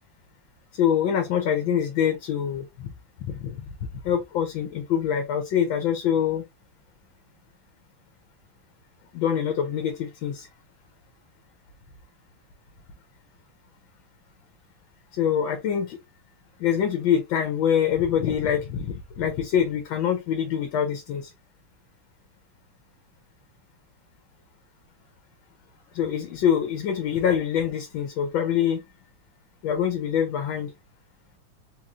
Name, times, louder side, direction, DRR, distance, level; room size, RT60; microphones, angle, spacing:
voice 1, 0.8-2.9 3.3-3.6 4.0-6.4 9.1-10.5 15.1-16.0 16.6-21.3 25.9-28.8 29.6-30.7, left 8 dB, 70° left, 1.4 m, -25 dB
3.8 x 3.0 x 2.5 m
omnidirectional pair, 2.4 m